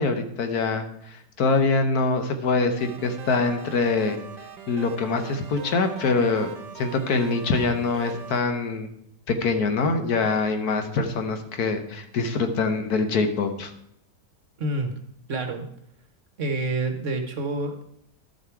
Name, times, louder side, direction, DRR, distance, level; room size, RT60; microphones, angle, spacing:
voice 1, 0.0-4.2 4.7-6.5 6.8-8.9 9.3-13.7, left 3 dB, 65° left, 7 dB, 1.4 m, -24 dB
sound 1, 2.8-8.4, right 6 dB, 90° right, 1.6 m, -41 dB
voice 2, 14.6-15.0 15.3-15.7 16.4-17.8, right 2 dB, 50° right, 6 dB, 1.3 m, -28 dB
12.0 x 6.7 x 4.6 m, 0.71 s
omnidirectional pair, 1.8 m